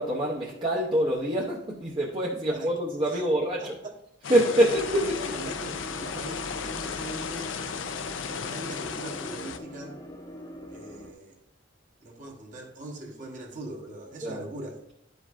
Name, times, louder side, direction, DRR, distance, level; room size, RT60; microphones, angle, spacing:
voice 1, 0.0-3.7 4.3-5.2 5.4-5.5 14.2-14.5, right 1 dB, 25° right, -3 dB, 0.7 m, -25 dB
voice 2, 3.6-4.0 5.0-7.6 8.3-10.0 10.7-11.4 12.0-14.8, right 1 dB, 45° right, 0 dB, 1.1 m, -41 dB
sound 1, 4.2-9.6, left 6 dB, 80° left, 0.5 m, -35 dB
sound 2, 4.7-11.1, equal, 20° left, 0.7 m, -42 dB
11.0 x 5.1 x 2.5 m, 0.79 s
head